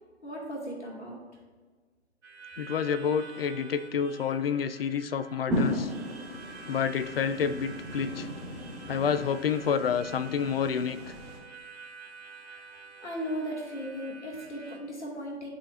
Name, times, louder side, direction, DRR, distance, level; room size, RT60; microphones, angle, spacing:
voice 1, 0.2-1.2 12.4-12.7 13.0-15.5, equal, 75° left, -2 dB, 2.0 m, -37 dB
Harmonica, 2.2-14.8, right 4 dB, 75° right, 2.1 m, -48 dB
voice 2, 2.6-5.9 6.7-8.3 8.9-11.0, left 7 dB, 55° left, 14 dB, 0.5 m, -29 dB
sound 1, 5.5-11.4, left 1 dB, ahead, 0.9 m, -36 dB
12.0 x 4.2 x 2.5 m, 1.4 s
figure-of-eight pair, 135°, 35 cm